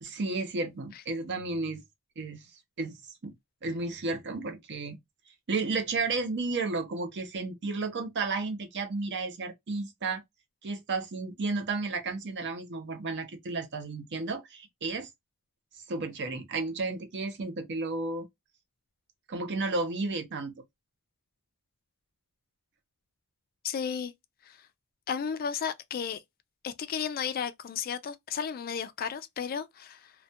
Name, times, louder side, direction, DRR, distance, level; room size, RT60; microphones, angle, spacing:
voice 1, 0.0-1.8 2.2-2.4 2.8-3.3 3.6-5.0 5.5-10.2 10.6-15.1 15.9-18.3 19.3-20.5, right 3 dB, 50° right, 0.6 m, -32 dB
voice 2, 23.6-24.1 24.4-24.6 25.1-26.2 26.6-30.1, left 7 dB, 40° left, 0.3 m, -33 dB
2.3 x 2.1 x 2.5 m
head